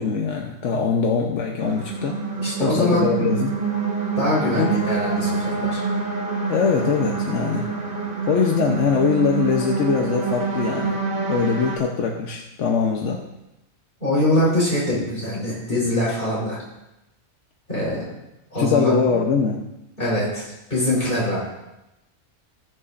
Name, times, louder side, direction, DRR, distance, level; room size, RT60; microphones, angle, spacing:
voice 1, 0.0-2.2 2.6-3.5 4.6-4.7 6.5-7.7 8.3-11.0 11.3-13.2 18.6-19.6, left 5 dB, 65° left, 1 dB, 1.2 m, -22 dB
sound 1, 1.6-11.8, right 4 dB, 40° right, 2.0 m, -26 dB
voice 2, 2.4-3.0 4.2-5.8 14.0-16.6 17.7-18.0 18.5-19.2 20.0-21.4, left 1 dB, 40° left, -6 dB, 4.7 m, -23 dB
18.5 x 6.9 x 2.5 m, 0.91 s
omnidirectional pair, 1.4 m